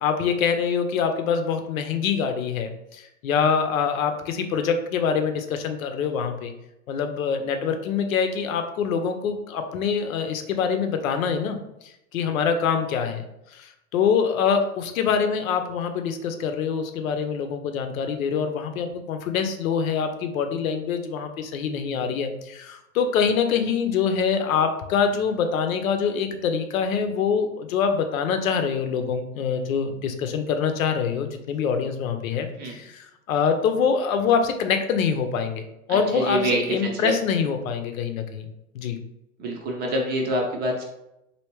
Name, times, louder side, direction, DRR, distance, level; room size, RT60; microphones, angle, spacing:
voice 1, 0.0-6.5 6.9-11.6 12.1-13.2 13.5-35.6 35.9-38.5 38.7-39.0, left 6 dB, 75° left, 7 dB, 0.7 m, -25 dB
voice 2, 35.9-37.1 39.4-40.8, right 1 dB, 25° right, 0 dB, 0.6 m, -26 dB
3.1 x 2.7 x 3.0 m, 0.85 s
hypercardioid pair, 135°, 41 cm